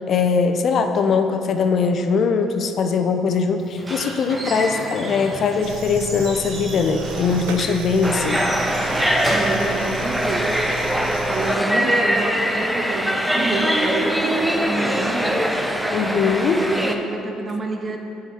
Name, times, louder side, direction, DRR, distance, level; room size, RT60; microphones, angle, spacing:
voice 1, 0.0-8.4 15.9-16.6, left 5 dB, 55° left, 7 dB, 0.6 m, -21 dB
Squeak / Wood, 3.6-10.5, right 1 dB, 25° right, 1.2 m, -32 dB
sound 1, 5.6-11.6, right 8 dB, 85° right, 0.3 m, -34 dB
sound 2, 8.0-17.0, equal, ahead, 0.7 m, -22 dB
voice 2, 9.2-10.7 11.3-15.4 16.0-18.0, right 3 dB, 40° right, 3 dB, 1.0 m, -28 dB
7.3 x 5.0 x 5.7 m, 2.8 s
supercardioid pair, 65°, 0 cm